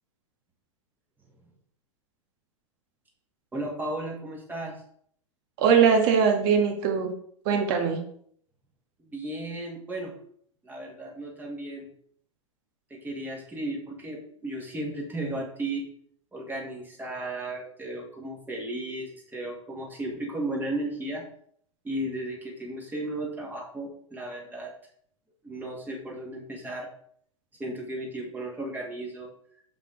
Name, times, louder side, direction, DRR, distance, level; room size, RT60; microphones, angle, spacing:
voice 1, 3.5-4.7 9.0-10.1 10.6-11.9 12.9-15.9 16.3-21.2 21.8-24.7 25.4-26.9 27.6-29.3, right 1 dB, 10° right, -1 dB, 1.9 m, -35 dB
voice 2, 5.6-7.1 7.4-8.0, right 6 dB, 45° right, 3 dB, 1.7 m, -21 dB
6.9 x 5.8 x 3.9 m, 0.62 s
figure-of-eight pair, 95°, 17 cm